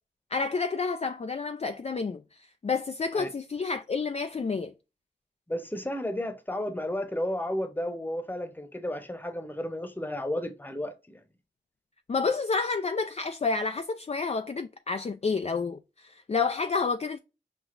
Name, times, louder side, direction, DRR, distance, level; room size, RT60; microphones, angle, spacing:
voice 1, 0.3-4.7 12.1-17.2, left 4 dB, 35° left, 0.4 m, -29 dB
voice 2, 5.5-11.2, left 1 dB, 10° left, 0.9 m, -33 dB
5.8 x 2.4 x 2.5 m
cardioid pair, 40°, 19 cm